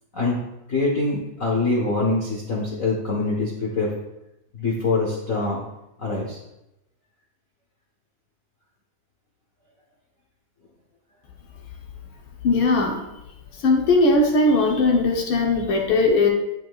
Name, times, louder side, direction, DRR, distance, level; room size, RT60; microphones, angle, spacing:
voice 1, 0.7-3.9 4.5-5.6 6.0-6.4, left 3 dB, 80° left, -3 dB, 0.7 m, -24 dB
voice 2, 12.4-13.0 13.6-16.3, left 2 dB, 65° left, 0 dB, 1.3 m, -19 dB
11.0 x 5.6 x 2.4 m, 0.89 s
omnidirectional pair, 3.3 m